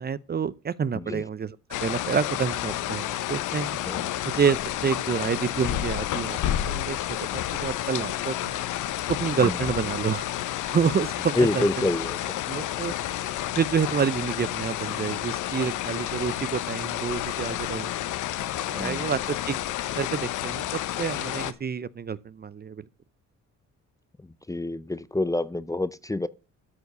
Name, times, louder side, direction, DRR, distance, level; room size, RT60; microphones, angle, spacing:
voice 1, 0.0-1.6 1.8-3.8 4.2-7.0 7.3-8.5 9.1-10.3 10.6-11.8 12.5-12.9 13.6-17.9 18.6-19.6 20.0-22.8, right 6 dB, 30° right, 0.6 m, -28 dB
sound 1, 1.7-21.5, left 13 dB, 85° left, 1.0 m, -30 dB
voice 2, 11.4-12.2 18.8-19.1 24.5-26.3, left 2 dB, 10° left, 0.6 m, -27 dB
13.0 x 4.6 x 6.7 m
cardioid pair, 90°, 30 cm